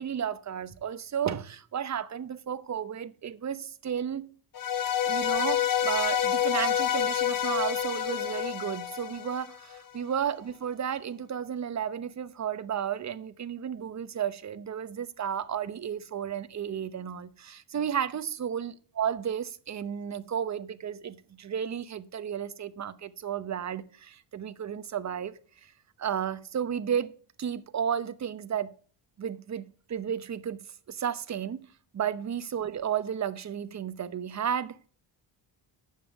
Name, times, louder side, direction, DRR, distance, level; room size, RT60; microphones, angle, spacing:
voice 1, 0.0-4.3 5.1-25.3 25.6-25.7 26.0-27.1 27.4-28.7 29.2-30.6 30.9-31.7 31.9-34.9, right 8 dB, 40° right, 0.9 m, -33 dB
sound 1, 4.6-9.8, left 10 dB, 45° left, 1.1 m, -28 dB
9.3 x 7.3 x 6.3 m
cardioid pair, 110°, 45 cm